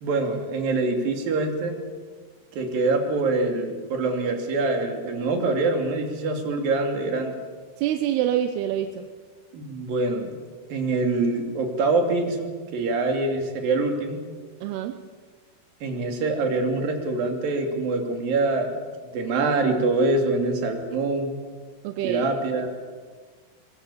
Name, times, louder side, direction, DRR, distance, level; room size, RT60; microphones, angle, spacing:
voice 1, 0.0-1.8 2.5-7.4 9.5-10.4 10.7-14.2 15.8-18.7 19.0-21.3 22.0-22.7, right 3 dB, 55° right, 3 dB, 4.3 m, -25 dB
voice 2, 7.8-9.1 14.6-15.0 21.8-22.2, right 11 dB, 75° right, 8 dB, 2.7 m, -26 dB
22.5 x 22.5 x 8.6 m, 1.5 s
omnidirectional pair, 5.1 m